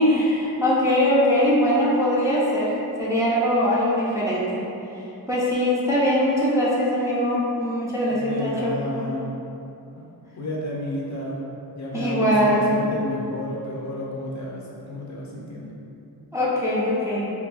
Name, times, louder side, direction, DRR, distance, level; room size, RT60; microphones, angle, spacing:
voice 1, 0.0-4.6 5.3-8.7 11.9-12.8 16.3-17.3, equal, 10° right, -8 dB, 0.5 m, -21 dB
voice 2, 8.1-9.3 9.9-10.1 10.3-11.4 11.7-15.7, left 1 dB, 45° left, -4 dB, 0.5 m, -31 dB
3.4 x 2.6 x 2.5 m, 2.8 s
wide cardioid pair, 115°, 40 cm